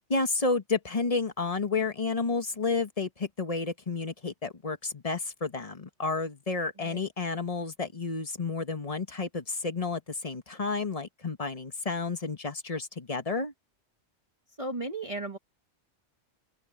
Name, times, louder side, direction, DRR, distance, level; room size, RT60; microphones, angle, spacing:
voice 1, 0.1-13.5, left 4 dB, 30° left, 1.5 m, -31 dB
voice 2, 14.6-15.4, right 2 dB, 30° right, 1.6 m, -35 dB
omnidirectional pair, 1.2 m